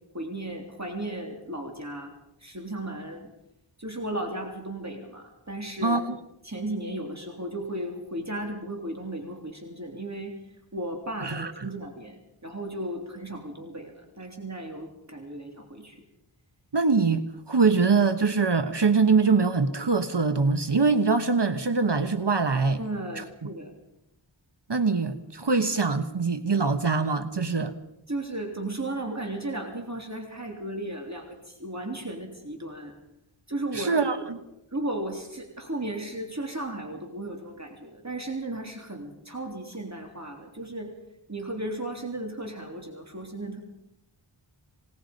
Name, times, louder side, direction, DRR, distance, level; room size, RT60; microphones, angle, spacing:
voice 1, 0.1-2.1 2.4-3.3 3.8-6.0 6.4-10.3 10.7-16.0 22.8-23.7 28.1-32.9 33.5-34.0 34.7-40.9 41.3-43.6, right 1 dB, 35° right, 2 dB, 3.3 m, -35 dB
voice 2, 5.8-6.2 11.2-11.7 16.7-22.8 23.1-23.2 24.7-27.7 33.7-34.4, right 4 dB, 55° right, 9 dB, 1.3 m, -23 dB
27.0 x 19.0 x 5.3 m, 0.85 s
wide cardioid pair, 55°, 49 cm